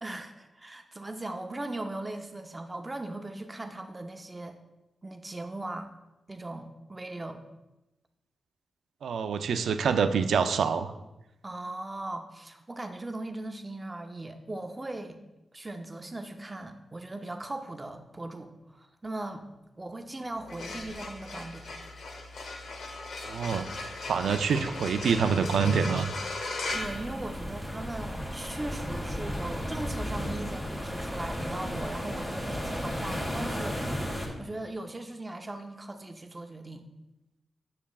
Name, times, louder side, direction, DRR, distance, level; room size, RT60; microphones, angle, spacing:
voice 1, 0.0-4.6 5.0-5.9 6.3-7.4 11.4-15.2 15.5-19.5 19.8-21.7 26.7-36.8, right 2 dB, 20° right, 6 dB, 0.6 m, -39 dB
voice 2, 9.0-10.9 23.2-23.7 24.1-26.1, right 6 dB, 85° right, 9 dB, 0.4 m, -26 dB
sound 1, 20.4-27.8, left 3 dB, 75° left, 0.8 m, -38 dB
sound 2, 26.7-34.3, equal, 20° left, 1.5 m, -34 dB
7.2 x 7.1 x 2.3 m, 0.96 s
wide cardioid pair, 100°, 0 cm